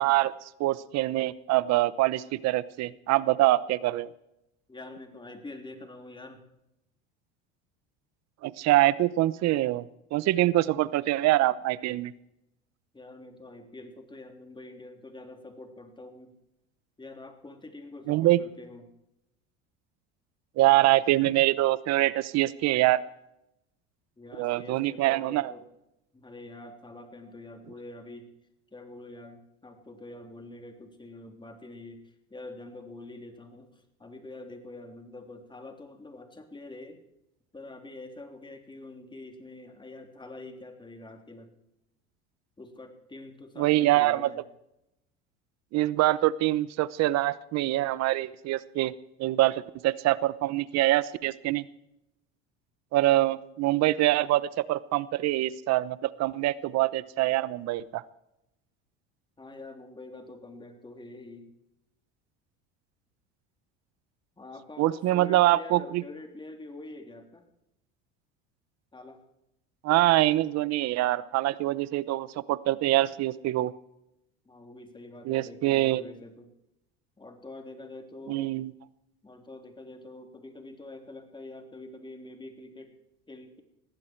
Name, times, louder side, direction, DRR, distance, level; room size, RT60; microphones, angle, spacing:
voice 1, 0.0-4.1 8.4-9.8 10.1-12.1 18.1-18.4 20.6-23.0 24.4-25.5 43.6-44.3 45.7-48.9 49.2-51.7 52.9-58.0 64.8-66.0 69.8-73.7 75.2-76.0 78.3-78.7, right 16 dB, 55° right, 18 dB, 0.9 m, -24 dB
voice 2, 4.7-6.4 12.9-16.3 17.0-18.8 24.2-25.7 26.1-28.3 28.7-37.0 37.5-41.5 42.6-44.4 59.4-61.5 64.4-67.4 68.9-69.2 74.4-76.5 77.2-78.6 79.2-83.0 83.3-83.6, left 2 dB, 15° left, 4 dB, 3.4 m, -45 dB
20.5 x 15.5 x 4.6 m, 0.85 s
supercardioid pair, 90°, 31 cm